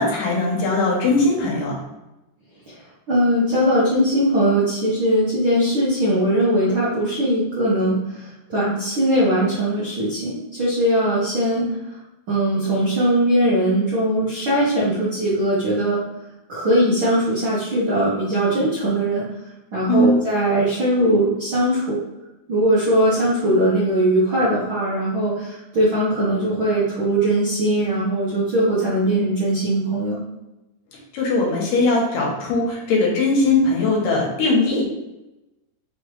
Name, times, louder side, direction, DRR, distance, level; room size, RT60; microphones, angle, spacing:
voice 1, 0.0-1.8 19.8-20.2 31.1-34.9, left 2 dB, 75° left, -2 dB, 2.6 m, -20 dB
voice 2, 3.1-8.0 8.5-11.6 12.3-16.0 16.5-19.2 19.7-22.0 22.5-30.2, right 1 dB, 65° right, -9 dB, 1.2 m, -20 dB
5.5 x 3.0 x 3.2 m, 0.96 s
omnidirectional pair, 4.0 m